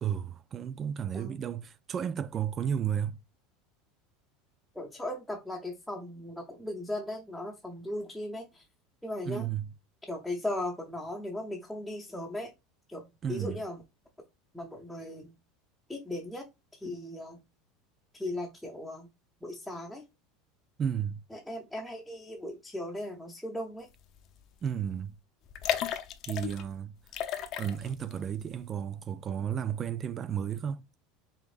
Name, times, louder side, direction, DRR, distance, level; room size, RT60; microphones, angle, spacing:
voice 1, 0.0-3.2 9.2-9.7 13.2-13.6 20.8-21.2 24.6-25.1 26.3-27.0 27.6-30.8, right 8 dB, 25° right, 0.4 m, -33 dB
voice 2, 4.7-8.6 9.0-9.5 10.1-12.5 12.9-13.0 13.3-13.8 14.5-15.3 15.9-16.5 16.7-17.4 18.1-19.1 19.4-20.0 21.3-23.9, left 1 dB, ahead, 0.9 m, -37 dB
sound 1, 24.2-24.4 24.7-24.8 25.5-26.7 27.1-28.1 28.5-28.6, left 10 dB, 40° left, 0.7 m, -33 dB
5.4 x 3.4 x 2.5 m
supercardioid pair, 150°, 0 cm